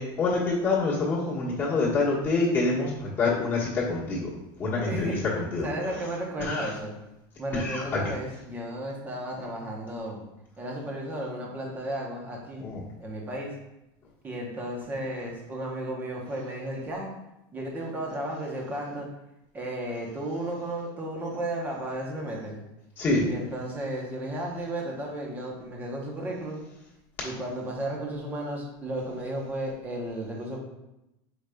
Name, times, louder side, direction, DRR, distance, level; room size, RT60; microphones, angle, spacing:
voice 1, 0.0-2.9 3.2-4.3 4.6-5.1 5.5-5.7 6.4-6.7 7.5-8.1 12.6-12.8 23.0-23.2, left 3 dB, 20° left, -7 dB, 1.3 m, -26 dB
voice 2, 4.9-6.9 7.4-10.2 10.6-12.7 13.0-13.5 14.2-17.1 17.5-19.1 19.5-22.6 23.2-26.6 27.2-30.6, right 1 dB, 15° right, -1 dB, 0.8 m, -34 dB
4.9 x 4.7 x 2.2 m, 0.91 s
supercardioid pair, 170°, 12 cm